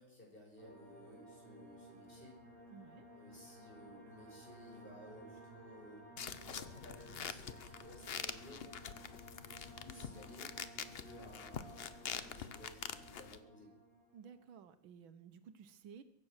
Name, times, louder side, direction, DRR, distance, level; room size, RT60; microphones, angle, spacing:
voice 1, 0.0-2.4 3.1-6.0 6.5-9.3 9.7-10.6 10.9-13.7, left 1 dB, 25° left, -2 dB, 5.9 m, -57 dB
sound 1, 0.6-14.6, right 1 dB, 40° right, 4.8 m, -56 dB
voice 2, 2.7-3.1 14.1-16.0, right 7 dB, 85° right, 11 dB, 1.7 m, -55 dB
sound 2, 6.2-13.4, left 7 dB, 70° left, 0.5 m, -46 dB
23.0 x 8.5 x 6.5 m, 0.75 s
omnidirectional pair, 2.1 m